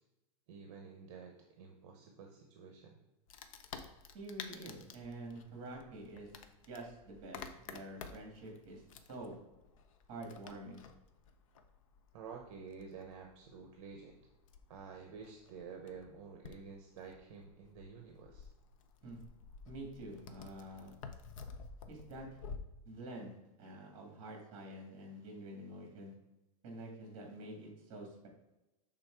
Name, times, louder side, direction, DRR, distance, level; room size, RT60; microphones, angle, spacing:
voice 1, 0.5-3.0 12.1-14.2 14.7-18.5, right 5 dB, 50° right, 2 dB, 0.8 m, -50 dB
Wood, 3.3-22.6, left 5 dB, 65° left, 0.6 m, -52 dB
voice 2, 4.1-6.3 6.6-9.4 10.1-10.8 19.0-19.2 19.7-20.9 21.9-22.3 22.9-26.1 26.6-28.3, right 1 dB, 30° right, 1 dB, 1.8 m, -48 dB
6.2 x 3.7 x 4.5 m, 1.0 s
supercardioid pair, 170°, 19 cm